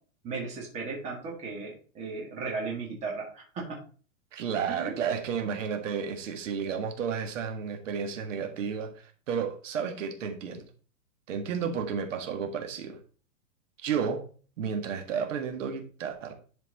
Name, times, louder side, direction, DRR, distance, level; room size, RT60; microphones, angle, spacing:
voice 1, 0.2-3.8 4.7-4.9 5.4-5.6, right 4 dB, 15° right, -1 dB, 1.8 m, -36 dB
voice 2, 4.3-10.7 11.3-13.0 13.8-14.2 14.6-16.3, right 7 dB, 65° right, 5 dB, 1.7 m, -32 dB
11.0 x 4.5 x 4.1 m, 0.39 s
supercardioid pair, 175°, 41 cm